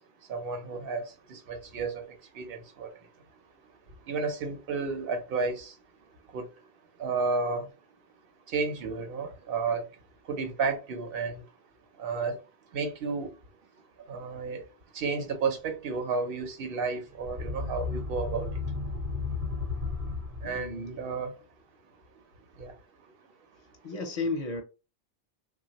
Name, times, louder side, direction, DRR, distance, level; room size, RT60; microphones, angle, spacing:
voice 1, 0.3-2.1 2.3-2.9 4.1-5.7 6.3-6.5 7.0-7.7 8.5-9.8 10.3-11.4 12.0-12.4 12.7-13.3 14.1-14.6 14.9-18.5 20.4-21.3 22.6-22.7, right 4 dB, 65° right, 0.9 m, -32 dB
sound 1, 17.1-20.9, left 4 dB, 40° right, 0.8 m, -34 dB
voice 2, 20.4-21.0 23.8-24.6, left 3 dB, 50° left, 0.5 m, -33 dB
3.2 x 2.2 x 2.9 m
omnidirectional pair, 1.1 m